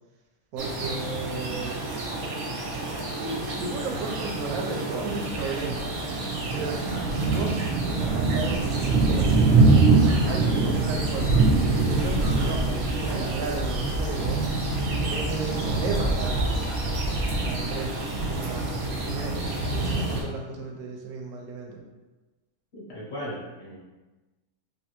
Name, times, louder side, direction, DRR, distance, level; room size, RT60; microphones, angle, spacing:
voice 1, 0.5-1.9 3.1-5.9 6.5-11.4 11.8-14.4 15.1-16.9 17.4-21.8, right 3 dB, 80° right, 0 dB, 1.1 m, -34 dB
sound 1, 0.6-20.2, right 3 dB, 60° right, 0.7 m, -25 dB
voice 2, 22.7-23.8, equal, 50° left, -7 dB, 0.9 m, -37 dB
3.2 x 2.5 x 2.9 m, 1.2 s
omnidirectional pair, 1.6 m